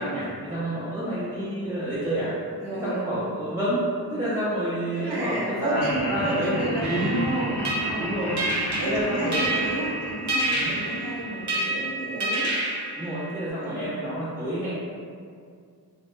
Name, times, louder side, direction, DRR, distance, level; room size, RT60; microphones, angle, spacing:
voice 1, 0.0-2.3 2.7-3.8 4.1-6.6 6.8-7.2 8.0-8.4 8.8-9.5 10.5-10.7 12.9-14.7, right 1 dB, 10° right, -12 dB, 0.4 m, -29 dB
voice 2, 2.6-3.0 4.9-8.3 8.8-12.5 13.6-13.9, right 1 dB, 80° right, -4 dB, 0.7 m, -31 dB
Laughter, 5.7-11.9, left 1 dB, 80° left, 0.6 m, -34 dB
sound 1, 6.8-13.5, right 2 dB, 45° right, 0.6 m, -29 dB
2.1 x 2.0 x 3.0 m, 2.2 s
wide cardioid pair, 105°, 39 cm